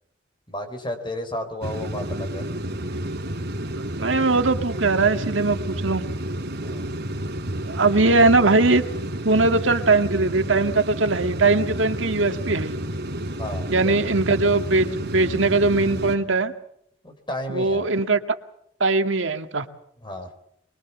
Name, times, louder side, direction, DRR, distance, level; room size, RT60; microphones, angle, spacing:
voice 1, 0.5-2.5 6.6-6.8 13.4-14.0 17.0-17.9 20.0-20.3, left 1 dB, 25° left, 6 dB, 4.9 m, -32 dB
sound 1, 1.6-16.2, right 1 dB, 55° right, 3.7 m, -30 dB
voice 2, 3.8-6.0 7.7-8.8 9.2-12.8 13.7-16.5 17.5-18.2 18.8-19.7, right 3 dB, 80° right, 7 dB, 1.8 m, -20 dB
24.0 x 23.5 x 7.2 m, 0.71 s
head